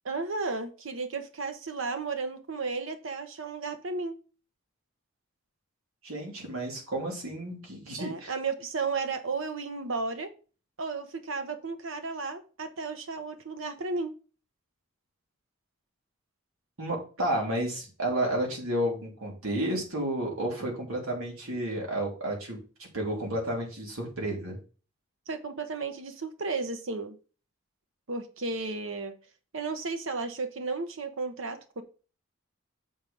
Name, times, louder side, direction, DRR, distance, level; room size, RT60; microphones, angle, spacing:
voice 1, 0.0-4.2 8.0-10.3 10.8-14.1 25.3-27.2 28.1-29.1 29.5-31.8, right 4 dB, 65° right, 8 dB, 0.9 m, -33 dB
voice 2, 6.0-8.3 16.8-24.6, right 1 dB, 85° right, 0 dB, 3.0 m, -31 dB
7.3 x 4.7 x 5.2 m, 0.36 s
head